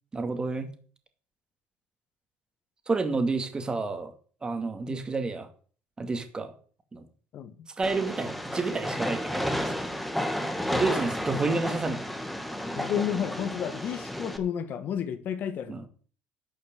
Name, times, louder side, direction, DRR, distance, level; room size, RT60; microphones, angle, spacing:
voice 1, 0.1-0.7 2.9-4.1 4.4-5.5 6.0-6.5 6.9-7.0 7.8-9.9 10.7-12.1 15.7-15.9, right 3 dB, 20° right, 2.3 m, -30 dB
Train, 7.8-14.4, equal, ahead, 1.8 m, -32 dB
voice 2, 12.7-15.9, left 8 dB, 55° left, 1.8 m, -31 dB
11.5 x 6.5 x 7.7 m
cardioid pair, 105°, 4 cm